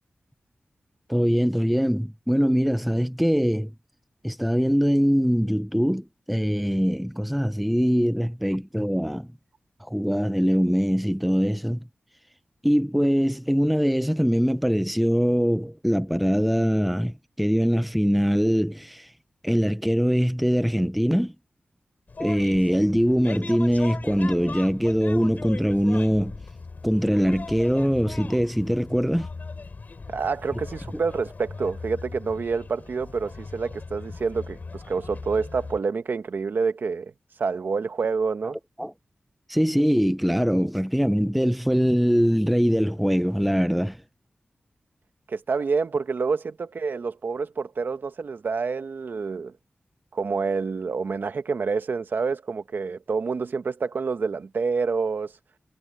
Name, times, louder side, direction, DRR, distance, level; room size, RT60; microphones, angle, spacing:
voice 1, 1.1-3.7 4.2-9.3 9.9-11.8 12.6-19.1 19.4-21.3 22.2-26.4 26.8-29.3 30.9-31.0 38.8-38.9 39.5-44.0, equal, ahead, 0.8 m, -22 dB
sound 1, 22.1-35.8, left 4 dB, 55° left, 4.0 m, -39 dB
voice 2, 30.1-37.1 37.4-38.6 45.3-49.5 50.1-55.3, right 4 dB, 75° right, 1.5 m, -27 dB
wide cardioid pair, 75°, 4 cm